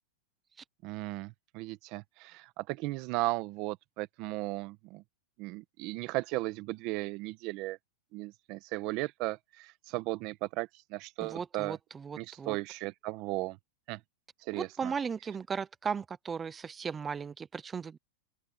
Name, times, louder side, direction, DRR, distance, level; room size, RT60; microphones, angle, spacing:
voice 1, 0.8-5.0 5.4-7.8 8.1-11.8 12.2-13.6 13.9-14.0 14.4-14.9, right 20 dB, 35° right, 1.1 m, -36 dB
voice 2, 11.2-12.6 14.5-18.0, right 6 dB, 15° right, 0.5 m, -36 dB
open air
supercardioid pair, 165°, 0 cm